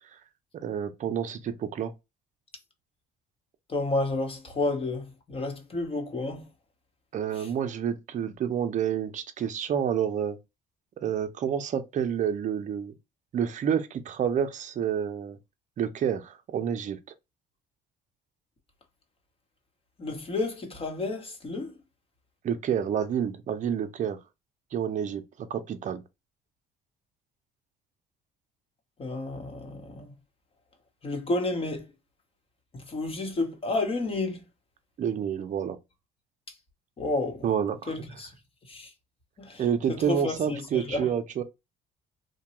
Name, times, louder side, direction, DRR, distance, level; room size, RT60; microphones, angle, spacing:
voice 1, 0.5-1.9 7.1-10.4 11.0-12.9 13.3-15.4 15.8-17.0 22.4-24.2 24.7-25.2 25.5-26.0 35.0-35.8 37.4-37.9 39.6-41.4, right 8 dB, 45° right, 0.6 m, -29 dB
voice 2, 3.7-6.5 7.3-7.5 20.0-21.7 29.0-30.1 31.0-31.9 32.7-34.4 37.0-37.4 37.9-38.3 38.7-38.9 39.4-41.1, left 2 dB, 35° left, 1.0 m, -31 dB
2.9 x 2.2 x 2.9 m
cardioid pair, 110°, 17 cm